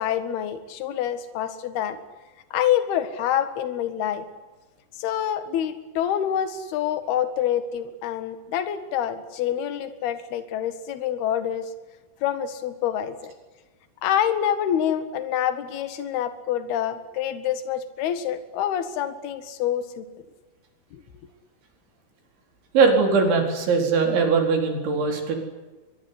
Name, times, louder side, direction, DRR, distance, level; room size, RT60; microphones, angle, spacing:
voice 1, 0.0-2.0 2.5-4.3 5.0-11.7 12.2-13.3 14.0-20.1 20.9-21.0, left 10 dB, 65° left, 10 dB, 3.6 m, -26 dB
voice 2, 22.7-25.4, right 4 dB, 85° right, 4 dB, 6.7 m, -20 dB
24.0 x 22.5 x 9.6 m, 1.2 s
omnidirectional pair, 5.2 m